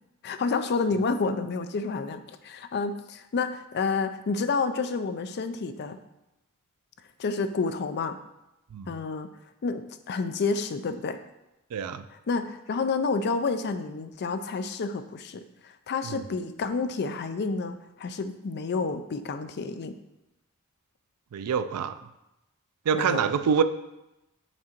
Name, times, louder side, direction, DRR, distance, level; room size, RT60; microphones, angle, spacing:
voice 1, 0.2-6.0 7.2-8.2 8.9-9.3 9.6-11.2 12.3-19.9 22.9-23.2, left 4 dB, 50° left, 10 dB, 0.4 m, -29 dB
voice 2, 11.7-12.1 16.0-16.2 21.3-22.0 22.9-23.6, right 7 dB, 90° right, 12 dB, 0.4 m, -26 dB
6.1 x 3.8 x 4.4 m, 0.93 s
head